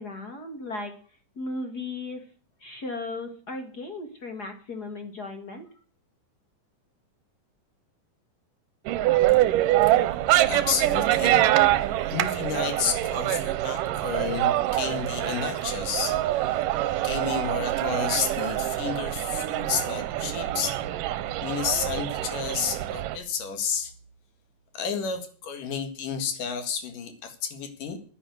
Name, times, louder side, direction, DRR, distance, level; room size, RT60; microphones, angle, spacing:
voice 1, 0.0-2.3 2.6-5.7, left 2 dB, 40° left, 5 dB, 1.7 m, -36 dB
sound 1, 8.9-23.2, right 14 dB, 80° right, 2.3 m, -25 dB
voice 2, 10.5-11.5 11.8-20.8 21.4-23.9 24.7-28.0, left 6 dB, 70° left, 8 dB, 3.3 m, -31 dB
10.5 x 10.0 x 7.7 m, 0.43 s
omnidirectional pair, 3.9 m